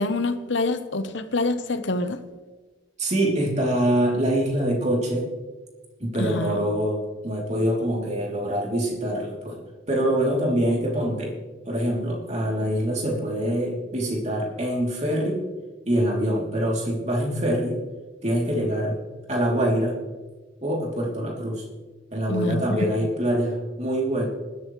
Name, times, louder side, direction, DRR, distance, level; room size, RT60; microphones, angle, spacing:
voice 1, 0.0-2.2 6.2-6.7 22.3-22.9, left 2 dB, 60° left, 10 dB, 0.9 m, -26 dB
voice 2, 3.0-5.3 6.0-11.3 11.6-15.4 15.8-17.8 18.2-19.0 19.3-19.9 20.6-21.6 22.1-24.3, right 1 dB, 35° right, -2 dB, 3.1 m, -24 dB
19.5 x 12.5 x 3.2 m, 1.3 s
head